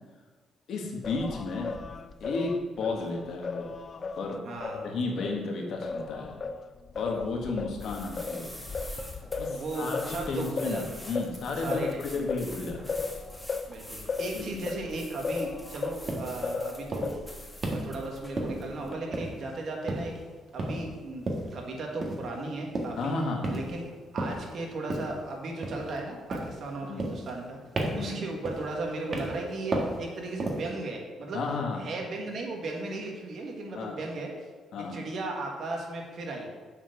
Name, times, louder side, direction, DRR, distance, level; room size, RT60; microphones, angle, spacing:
voice 1, 0.7-1.7 2.2-3.7 4.2-4.4 4.8-6.4 6.9-8.5 9.4-12.8 14.3-14.7 23.0-23.5 26.8-27.1 27.9-28.2 31.3-31.8 33.7-34.0 34.7-35.0, left 3 dB, 70° left, 1 dB, 1.7 m, -33 dB
Singing, 1.0-5.4 5.8-16.1 16.4-17.4, left 4 dB, 45° left, 0.4 m, -36 dB
voice 2, 4.4-4.9 9.5-10.9 11.6-12.2 13.7-20.2 20.5-23.1 23.5-27.6 27.9-31.4 31.8-34.3 34.9-36.5, right 2 dB, 60° right, 1 dB, 1.7 m, -36 dB
sound 1, 7.7-19.0, equal, 5° left, 1.3 m, -45 dB
sound 2, 16.1-16.3 16.9-17.2 17.6-17.9 18.4-18.8 19.1-19.6 19.9-20.2 20.6-20.9 21.3-21.5 22.0-22.3 22.7-23.0 23.4-23.8 24.2-24.5 24.9-25.2 25.6-26.0 26.3-26.6 27.0-27.5 27.8-28.1 28.4-28.8 29.1-29.4 29.7-30.0 30.4-30.7, right 2 dB, 40° right, 1.6 m, -32 dB
7.3 x 4.5 x 6.9 m, 1.5 s
cardioid pair, 90°, 0 cm